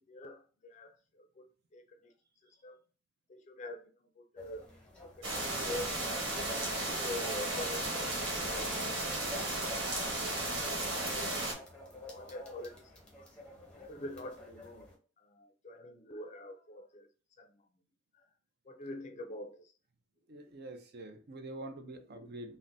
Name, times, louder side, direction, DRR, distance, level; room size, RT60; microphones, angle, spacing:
voice 1, 0.1-2.1 2.4-2.8 3.3-4.7 5.0-6.0 6.5-8.7 12.1-12.9 13.2-13.3 13.8-14.9 15.2-17.1 17.4-17.6 18.1-18.2 18.6-19.7, left 1 dB, 35° left, 0.4 m, -46 dB
sound 1, 4.4-15.0, left 2 dB, 5° left, 0.8 m, -50 dB
sound 2, 5.2-11.5, right 2 dB, 75° right, 1.2 m, -34 dB
voice 2, 20.3-22.6, right 2 dB, 55° right, 0.5 m, -45 dB
3.7 x 2.1 x 2.5 m
head